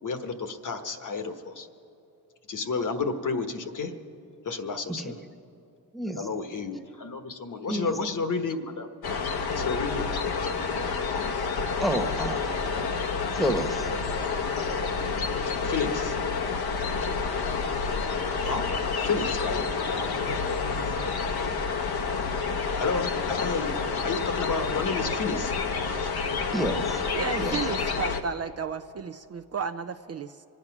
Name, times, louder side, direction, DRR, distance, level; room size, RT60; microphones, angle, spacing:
voice 1, 0.0-1.7 2.5-3.9 4.4-5.2 6.1-8.9 9.5-10.1 15.6-16.2 18.4-18.7 19.0-19.6 22.8-26.1, left 4 dB, 50° left, 1.3 m, -31 dB
sound 1, 9.0-28.2, left 5 dB, 70° left, 1.1 m, -29 dB
voice 2, 11.8-12.4 13.3-13.9 26.5-27.0 27.3-27.6, right 1 dB, ahead, 1.2 m, -29 dB
voice 3, 27.1-30.5, right 6 dB, 40° right, 0.5 m, -33 dB
24.0 x 9.3 x 6.0 m
cardioid pair, 65°, 40 cm